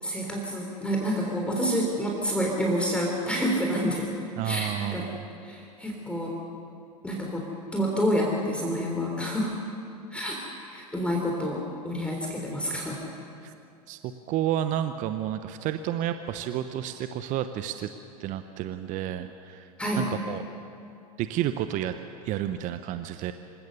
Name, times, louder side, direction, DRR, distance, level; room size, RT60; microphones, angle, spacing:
voice 1, 0.0-4.1 4.4-5.1 5.4-6.4 7.0-7.5 7.7-9.5 10.1-10.4 10.7-13.0 19.8-20.1, equal, 5° left, -1 dB, 3.8 m, -28 dB
voice 2, 4.4-5.2 13.4-13.5 13.9-17.9 18.2-19.7 20.0-20.4 21.2-21.9 22.2-23.3, right 11 dB, 40° right, 9 dB, 0.9 m, -30 dB
26.5 x 17.5 x 6.9 m, 2.5 s
figure-of-eight pair, 85°, 20 cm